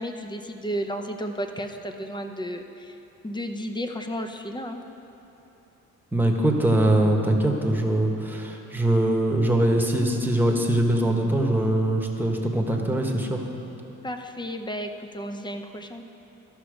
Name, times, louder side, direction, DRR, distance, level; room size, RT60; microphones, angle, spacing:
voice 1, 0.0-3.0 3.2-4.8 14.0-16.1, equal, 15° left, 6 dB, 0.7 m, -33 dB
voice 2, 6.1-13.4, right 1 dB, 5° right, 1 dB, 1.2 m, -22 dB
13.5 x 5.9 x 5.1 m, 2.9 s
cardioid pair, 90°, 30 cm